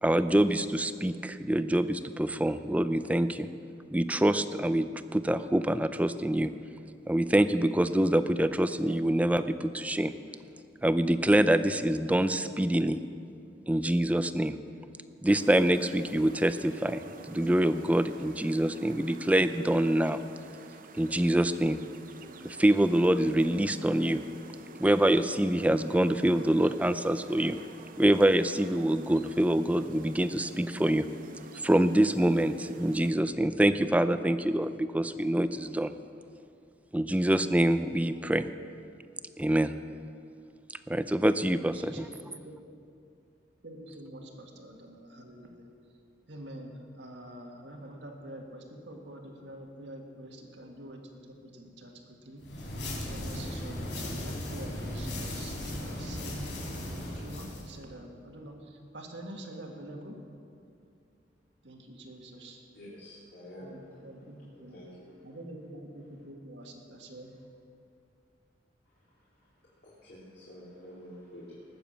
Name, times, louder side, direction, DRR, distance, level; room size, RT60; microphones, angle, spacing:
voice 1, 0.0-3.5 3.9-6.5 7.1-10.1 10.8-13.0 13.7-14.6 15.2-20.2 20.9-21.8 22.4-24.2 24.8-27.6 28.0-31.1 31.6-35.9 36.9-38.5 39.4-39.8 40.9-42.1, right 1 dB, 10° right, 11 dB, 0.4 m, -25 dB
sound 1, 15.3-33.1, right 3 dB, 50° right, 0.7 m, -49 dB
voice 2, 41.6-42.6 43.6-45.7 46.3-52.5 53.1-56.5 57.1-60.2 61.6-62.6 63.6-64.8 65.2-67.4, right 1 dB, 75° right, 2 dB, 1.9 m, -46 dB
sound 2, 52.4-57.7, left 1 dB, 90° left, 3.8 m, -37 dB
voice 3, 62.7-63.8 64.2-65.1 69.8-71.8, equal, 65° left, -9 dB, 3.1 m, -49 dB
19.5 x 7.1 x 7.3 m, 2.4 s
head